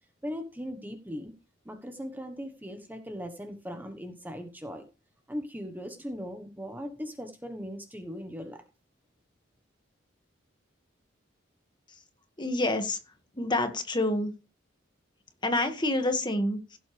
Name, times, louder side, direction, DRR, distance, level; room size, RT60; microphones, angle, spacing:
voice 1, 0.2-1.3 1.6-4.8 5.3-8.6, equal, 10° right, 6 dB, 1.2 m, -39 dB
voice 2, 12.4-13.0 13.4-14.3 15.4-16.8, left 2 dB, 20° left, 6 dB, 1.8 m, -27 dB
16.5 x 7.8 x 3.4 m, 0.31 s
head